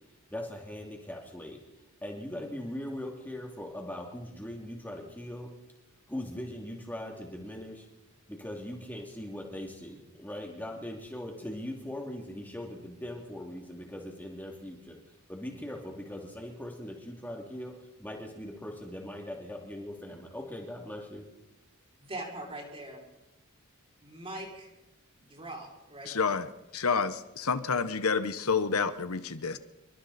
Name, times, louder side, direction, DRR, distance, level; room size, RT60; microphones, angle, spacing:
voice 1, 0.3-1.6 2.0-5.5 6.1-7.9 8.3-15.0 15.3-17.7 18.0-21.3, left 1 dB, 10° left, 0 dB, 2.8 m, -40 dB
voice 2, 22.0-23.0 24.0-24.7 25.3-26.3, right 1 dB, 25° right, -1 dB, 6.3 m, -41 dB
voice 3, 26.0-26.5 26.7-29.6, left 5 dB, 70° left, 12 dB, 1.1 m, -29 dB
28.0 x 24.0 x 4.3 m, 0.96 s
head